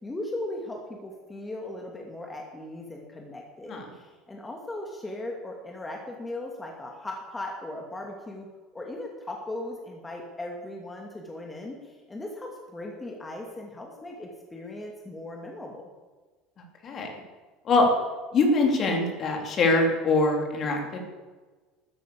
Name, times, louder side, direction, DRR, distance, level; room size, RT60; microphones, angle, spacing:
voice 1, 0.0-8.5 8.7-15.8, left 1 dB, 15° left, 0 dB, 2.6 m, -38 dB
voice 2, 18.3-21.0, left 2 dB, 45° left, 1 dB, 3.7 m, -23 dB
13.5 x 9.8 x 7.1 m, 1.3 s
supercardioid pair, 85°, 0 cm